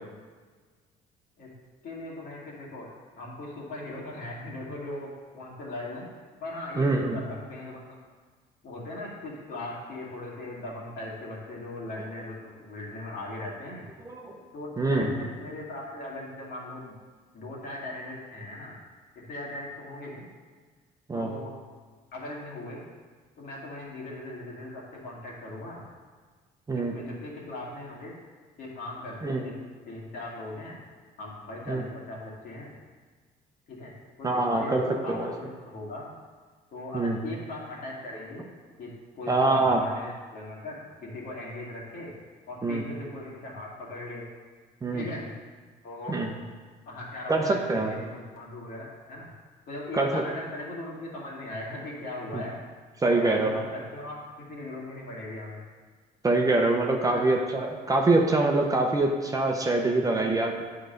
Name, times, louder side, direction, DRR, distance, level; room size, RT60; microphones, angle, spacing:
voice 1, 1.8-2.9 3.2-5.1 5.3-6.1 6.4-8.0 8.6-13.9 14.5-16.9 17.3-18.8 19.2-20.2 21.1-21.5 22.1-22.8 23.4-25.8 26.7-28.1 28.6-29.5 29.8-30.8 31.2-32.7 33.7-33.9 34.2-36.1 36.7-38.4 38.8-42.1 42.5-44.3 44.9-45.3 45.8-46.2 46.9-49.3 49.7-52.6 53.1-55.6 57.0-57.2 60.0-60.6, left 2 dB, 60° left, -4 dB, 2.4 m, -39 dB
voice 2, 6.8-7.2 14.0-14.4 14.8-15.1 21.1-21.3 26.7-26.9 29.2-29.4 31.7-31.8 34.2-34.8 35.1-35.3 36.9-37.2 39.3-39.8 42.6-42.8 44.8-45.1 46.1-46.3 47.3-47.9 49.9-50.2 52.3-52.4 53.0-53.6 56.2-60.6, right 2 dB, 20° right, 1 dB, 0.8 m, -24 dB
9.2 x 4.0 x 5.2 m, 1.5 s
cardioid pair, 110°, 17 cm